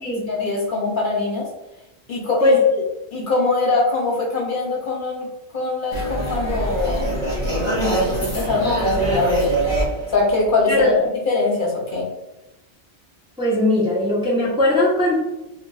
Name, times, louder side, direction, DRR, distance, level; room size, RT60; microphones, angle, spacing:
voice 1, 0.3-1.5 2.1-2.8 3.1-7.1 7.9-9.4 10.1-10.9 11.3-12.0, left 3 dB, 55° left, -3 dB, 0.9 m, -22 dB
sound 1, 5.9-11.1, right 1 dB, 30° left, 1.1 m, -23 dB
voice 2, 10.7-11.0 13.4-15.1, left 2 dB, 5° right, -6 dB, 0.7 m, -19 dB
2.5 x 2.3 x 3.8 m, 0.96 s
omnidirectional pair, 1.1 m